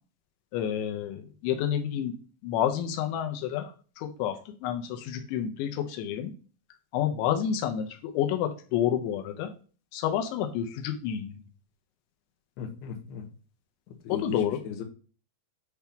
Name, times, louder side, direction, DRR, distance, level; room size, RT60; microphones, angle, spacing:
voice 1, 0.5-2.1 2.4-3.7 4.0-6.3 6.9-9.5 9.9-11.3 14.1-14.6, left 9 dB, 90° left, 5 dB, 3.1 m, -29 dB
voice 2, 12.6-13.3 14.0-14.8, left 7 dB, 70° left, 1 dB, 3.3 m, -37 dB
9.8 x 3.5 x 5.8 m, 0.39 s
omnidirectional pair, 5.2 m